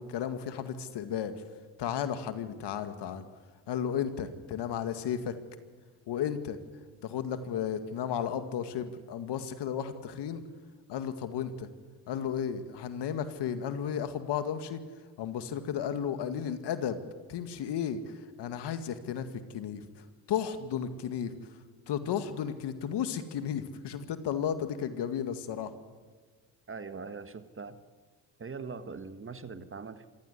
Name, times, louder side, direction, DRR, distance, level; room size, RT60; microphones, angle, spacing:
voice 1, 0.0-1.3 1.8-3.3 3.7-5.4 6.1-6.6 7.0-10.4 10.9-11.7 12.1-14.8 15.2-17.0 17.3-19.3 19.5-19.9 20.3-21.3 21.9-25.7, left 8 dB, 65° left, 10 dB, 2.2 m, -33 dB
voice 2, 26.7-27.8 28.4-30.1, right 4 dB, 25° right, 11 dB, 1.6 m, -41 dB
26.0 x 15.0 x 9.8 m, 1.4 s
supercardioid pair, 70°, 45 cm